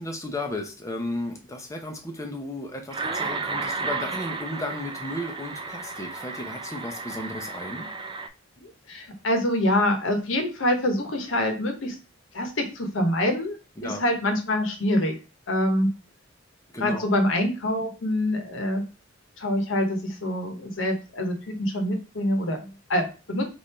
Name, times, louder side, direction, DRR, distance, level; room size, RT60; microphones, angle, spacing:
voice 1, 0.0-7.9 13.8-14.0 16.7-17.0, left 1 dB, 15° left, 3 dB, 0.7 m, -34 dB
sound 1, 2.9-8.3, right 4 dB, 25° right, 0.3 m, -33 dB
voice 2, 8.6-12.0 12.3-13.6 13.8-15.1 15.5-15.9 16.8-18.8 19.4-23.5, left 1 dB, 75° left, 4 dB, 1.0 m, -25 dB
3.3 x 2.6 x 4.2 m, 0.32 s
head